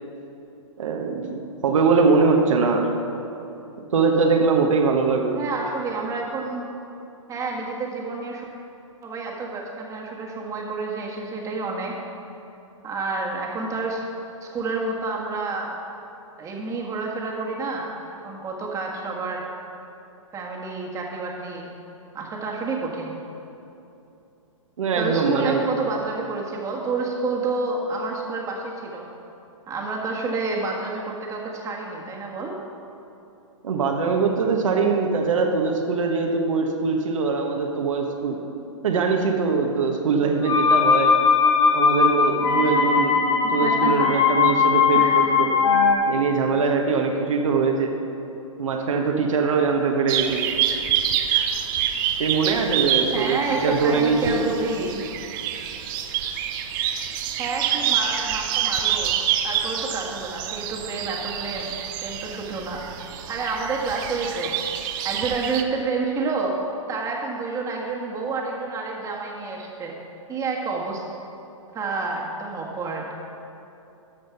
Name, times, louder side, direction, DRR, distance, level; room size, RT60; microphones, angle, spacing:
voice 1, 0.8-2.9 3.9-5.4 24.8-25.6 33.6-38.4 38.8-41.2 41.7-43.2 43.5-45.6 46.1-47.9 48.6-50.5 52.2-54.5, right 4 dB, 70° right, 2 dB, 1.3 m, -22 dB
voice 2, 5.4-6.7 7.3-8.4 9.0-11.9 12.8-14.0 14.4-15.8 16.4-19.4 20.3-21.7 22.1-23.2 25.0-29.1 29.7-32.5 43.6-44.1 44.9-45.3 53.1-55.0 57.4-59.2 59.4-62.8 63.3-64.6 65.0-66.6 66.9-70.0 70.3-71.0 71.7-73.1, right 3 dB, 20° right, -1 dB, 1.6 m, -29 dB
sound 1, 40.4-45.9, left 6 dB, 60° left, 1.9 m, -19 dB
sound 2, 50.1-65.6, right 9 dB, 40° right, 0.7 m, -27 dB
13.5 x 5.2 x 5.8 m, 2.9 s
hypercardioid pair, 130°, 17 cm